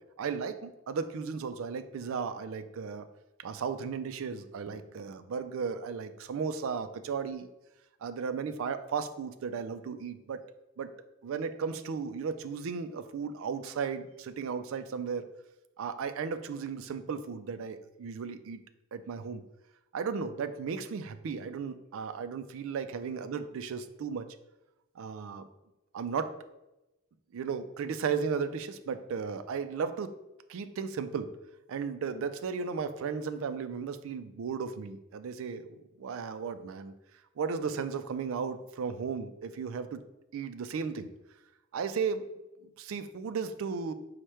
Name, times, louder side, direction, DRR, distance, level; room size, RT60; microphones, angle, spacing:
voice 1, 0.2-3.1 3.4-7.5 8.0-10.4 10.8-10.9 11.2-15.3 15.8-18.6 18.9-19.4 19.9-24.3 25.0-25.4 25.9-26.3 27.3-30.1 30.5-31.3 31.7-36.9 37.4-40.0 40.3-41.1 41.7-42.3 42.8-43.9, right 6 dB, 65° right, 11 dB, 0.3 m, -35 dB
4.8 x 2.1 x 4.3 m, 0.97 s
head